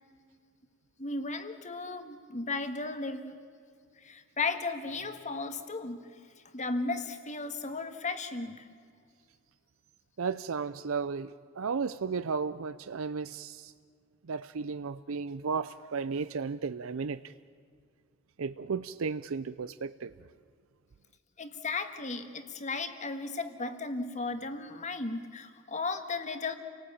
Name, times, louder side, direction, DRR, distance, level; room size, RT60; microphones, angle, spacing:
voice 1, 1.0-3.3 4.0-6.0 6.5-8.7 21.4-26.6, left 3 dB, 35° left, 9 dB, 1.7 m, -35 dB
voice 2, 10.2-13.7 14.2-17.3 18.4-20.1, right 5 dB, 85° right, 13 dB, 0.6 m, -34 dB
29.5 x 18.5 x 8.7 m, 2.2 s
head